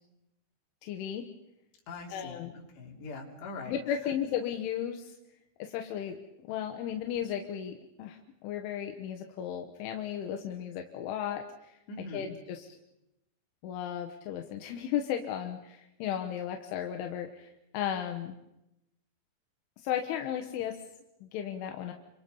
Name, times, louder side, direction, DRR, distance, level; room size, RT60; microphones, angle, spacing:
voice 1, 0.8-1.3 2.1-2.5 3.7-5.2 5.6-6.2 6.5-12.8 13.6-18.4 19.8-20.8 21.2-21.9, left 9 dB, 85° left, 4 dB, 3.7 m, -35 dB
voice 2, 1.9-3.7 11.9-12.3, left 3 dB, 65° left, 0 dB, 5.5 m, -42 dB
29.5 x 25.5 x 5.4 m, 0.90 s
omnidirectional pair, 5.3 m